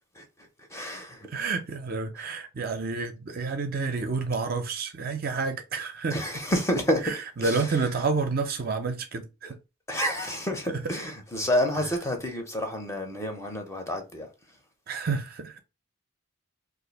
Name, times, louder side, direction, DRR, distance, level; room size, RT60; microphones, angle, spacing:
voice 1, 0.7-1.3 6.1-7.1 7.4-7.6 9.9-14.3, equal, 15° left, 0.5 m, -29 dB
voice 2, 1.3-6.2 7.0-9.6 10.7-10.8 14.9-15.6, right 4 dB, 45° right, 0.4 m, -29 dB
2.5 x 2.5 x 4.0 m
head